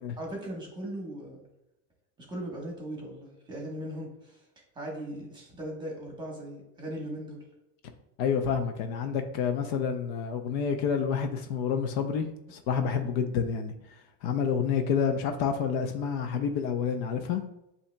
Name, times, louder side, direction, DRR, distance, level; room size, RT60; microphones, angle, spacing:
voice 1, 0.2-1.4 2.2-4.4 4.7-7.4, right 1 dB, 10° right, 1.1 m, -38 dB
voice 2, 8.2-13.7 14.2-17.4, left 6 dB, 60° left, 0.6 m, -28 dB
8.4 x 2.8 x 2.2 m
supercardioid pair, 155°, 37 cm